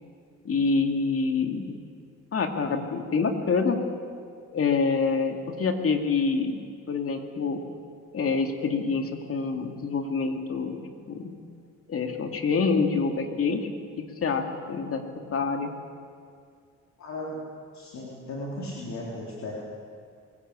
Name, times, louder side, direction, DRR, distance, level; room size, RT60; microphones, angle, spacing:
voice 1, 0.4-1.8 2.3-3.8 4.5-6.6 6.9-7.6 8.1-10.8 11.1-11.3 11.9-13.7 14.0-15.0 15.3-15.7, left 4 dB, 50° left, 5 dB, 2.6 m, -26 dB
voice 2, 17.0-17.4 17.7-19.5, left 1 dB, 65° left, -4 dB, 3.9 m, -36 dB
23.5 x 17.0 x 8.5 m, 2.2 s
cardioid pair, 90°, 30 cm